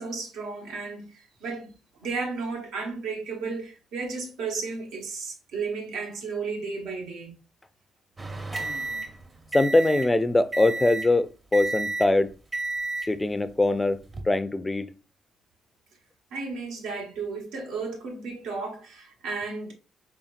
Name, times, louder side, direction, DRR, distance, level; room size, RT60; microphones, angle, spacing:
voice 1, 0.0-1.7 2.0-7.3 16.3-19.7, right 4 dB, 90° right, 1.2 m, -33 dB
sound 1, 8.2-10.2 10.5-11.2 11.5-12.2 12.5-13.2 13.9-14.2, right 3 dB, 25° right, 0.6 m, -32 dB
voice 2, 9.5-11.3 11.5-12.3 13.1-14.0 14.3-14.9, left 2 dB, 15° left, 0.4 m, -22 dB
4.0 x 3.4 x 2.4 m
cardioid pair, 90°, 0 cm